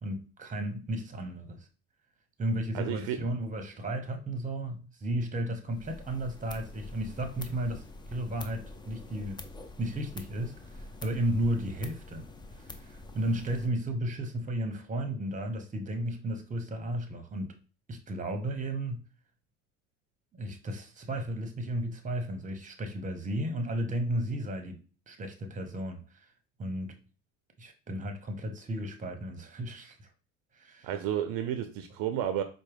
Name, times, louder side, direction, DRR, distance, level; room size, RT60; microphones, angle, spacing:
voice 1, 0.0-1.7 2.4-9.5 9.8-12.3 12.6-17.5 17.9-19.0 20.3-24.8 25.1-26.3 26.6-26.9 27.6-30.0 30.5-30.9, right 1 dB, 20° right, 0.9 m, -34 dB
voice 2, 2.7-3.2 30.8-32.4, right 10 dB, 60° right, 0.6 m, -31 dB
sound 1, 5.7-13.7, left 2 dB, 10° left, 0.4 m, -46 dB
4.4 x 2.1 x 3.4 m
hypercardioid pair, 80°, 39 cm